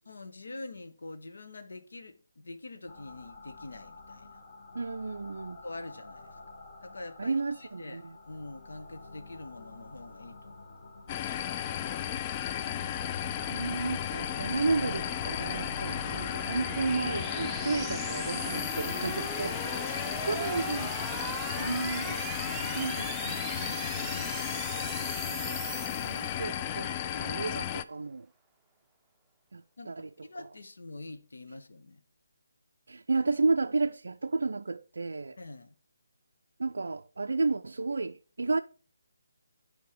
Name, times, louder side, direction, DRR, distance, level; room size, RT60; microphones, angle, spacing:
voice 1, 0.0-4.4 5.6-6.4 6.8-8.0 8.3-10.6 11.2-12.7 19.7-20.5 21.5-21.9 22.3-23.0 23.8-24.7 29.8-32.0 35.4-35.7, left 2 dB, 65° left, 1.0 m, -45 dB
sound 1, 2.9-18.3, left 2 dB, 45° left, 1.5 m, -47 dB
voice 2, 4.7-5.6 7.2-8.1 13.5-19.7 20.3-20.9 21.6-22.2 22.8-23.8 25.3-25.6 26.0-28.3 29.5-30.1 32.9-35.4 36.6-38.6, right 3 dB, 65° right, 0.4 m, -32 dB
sound 2, 11.1-27.8, left 11 dB, 25° left, 0.3 m, -34 dB
sound 3, 12.5-26.8, right 5 dB, 5° right, 0.7 m, -40 dB
8.4 x 5.3 x 4.8 m
figure-of-eight pair, 145°, 0 cm